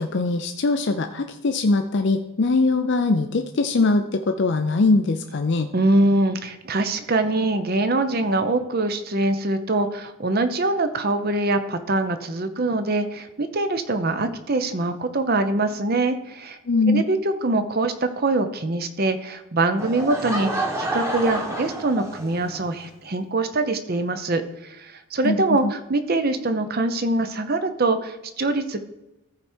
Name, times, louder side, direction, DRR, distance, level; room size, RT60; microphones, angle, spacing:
voice 1, 0.0-5.7 16.7-17.0 25.2-25.7, left 3 dB, 50° left, 6 dB, 0.5 m, -21 dB
voice 2, 5.7-16.6 16.9-17.2 17.4-20.5 20.8-28.8, right 2 dB, 45° right, 9 dB, 0.7 m, -23 dB
Laughter / Crowd, 19.8-22.6, right 1 dB, 10° right, 1.2 m, -29 dB
14.0 x 4.7 x 4.4 m, 0.94 s
head